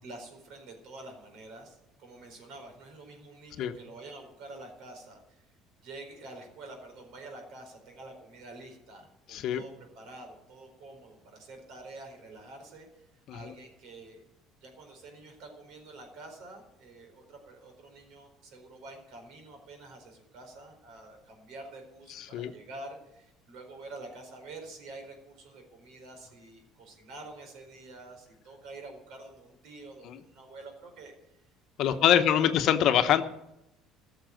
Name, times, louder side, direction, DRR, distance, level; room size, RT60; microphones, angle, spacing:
voice 1, 0.0-5.5 5.8-14.2 14.6-31.4 31.8-32.5, right 2 dB, 65° right, 4 dB, 4.5 m, -47 dB
voice 2, 9.3-9.6 13.3-13.5 22.2-22.5 30.0-30.2 31.8-33.2, left 10 dB, 60° left, 9 dB, 1.0 m, -24 dB
14.5 x 6.9 x 9.2 m, 0.87 s
cardioid pair, 110°, 0 cm